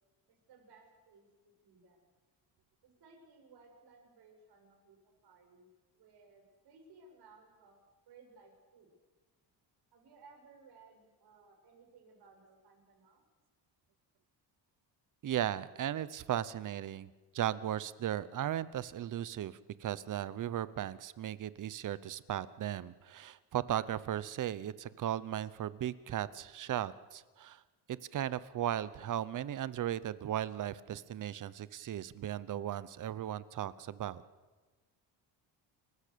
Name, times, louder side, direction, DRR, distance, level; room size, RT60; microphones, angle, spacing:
voice 1, 0.3-2.1 2.8-5.7 5.9-7.8 8.1-8.9 9.9-13.2, right 4 dB, 65° right, 3 dB, 6.4 m, -61 dB
voice 2, 15.2-27.6 27.9-34.2, right 11 dB, 45° right, 17 dB, 0.8 m, -36 dB
29.5 x 15.0 x 6.9 m, 1.3 s
cardioid pair, 145°, 43 cm